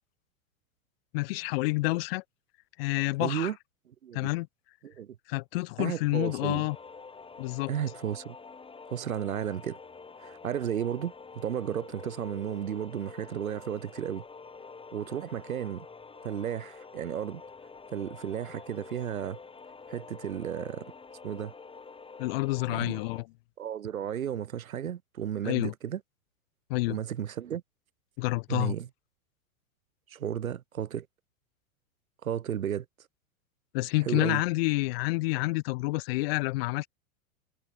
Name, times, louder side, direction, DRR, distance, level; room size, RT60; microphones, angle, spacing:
voice 1, 1.1-2.2 2.8-3.5 4.1-4.5 5.3-6.8 7.4-7.7 22.2-23.3 25.4-25.7 26.7-27.0 28.2-28.7 33.7-36.9, left 22 dB, 45° left, 0.5 m, -28 dB
voice 2, 3.2-3.6 4.0-4.3 4.8-5.2 5.8-6.7 7.7-8.4 8.9-9.8 10.2-14.2 14.9-15.9 16.2-17.4 17.9-19.4 19.9-20.9 21.2-21.5 22.7-23.0 23.6-26.0 26.9-27.6 28.5-28.9 30.1-31.1 32.2-32.8 34.0-34.4, right 9 dB, 80° right, 3.2 m, -33 dB
sound 1, 6.2-23.2, left 4 dB, 15° left, 6.5 m, -47 dB
hypercardioid pair, 110°, 41 cm